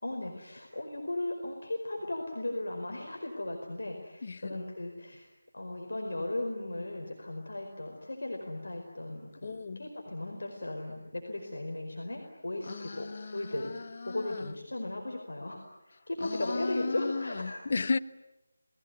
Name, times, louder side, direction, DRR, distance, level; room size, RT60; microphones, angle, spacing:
voice 1, 0.0-5.3 5.5-13.7 14.0-17.6, left 1 dB, 65° left, 4.9 m, -37 dB
voice 2, 4.2-4.7 9.4-9.9 12.6-14.6 16.2-18.0, left 4 dB, 45° left, 1.0 m, -35 dB
30.0 x 21.0 x 9.6 m
figure-of-eight pair, 160°, 0 cm